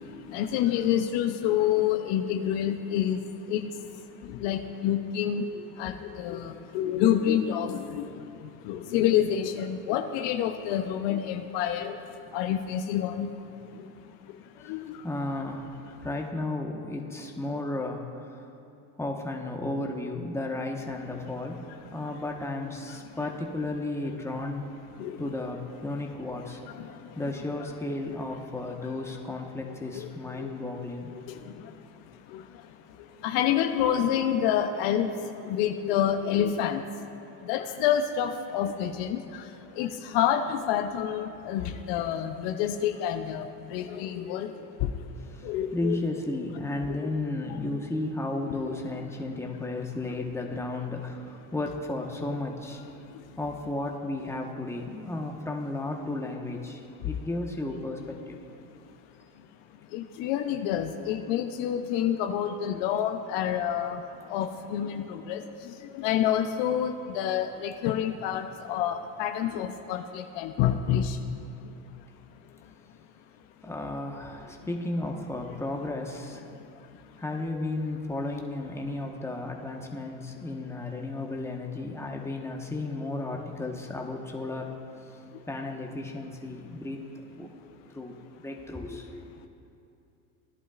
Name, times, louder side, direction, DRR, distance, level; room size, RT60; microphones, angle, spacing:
voice 1, 0.3-3.2 3.5-3.7 4.4-8.1 8.6-12.0 12.3-13.3 14.7-14.8 25.0-25.3 26.8-26.9 27.2-27.3 29.9-30.1 30.4-30.5 32.3-32.4 33.2-35.1 35.4-36.8 37.4-39.4 39.8-44.5 44.8-44.9 45.4-46.0 46.9-47.1 47.5-47.6 59.9-64.0 64.3-65.4 65.9-71.2, left 10 dB, 60° left, 6 dB, 0.7 m, -28 dB
voice 2, 15.0-18.4 19.0-21.6 21.9-24.6 25.2-26.6 27.1-31.1 45.3-52.8 53.4-58.4 73.6-76.4 77.2-84.7 85.5-87.5 87.9-88.1 88.4-89.2, left 2 dB, 5° left, 1 dB, 1.2 m, -34 dB
17.5 x 11.0 x 2.5 m, 2.7 s
hypercardioid pair, 75°, 47 cm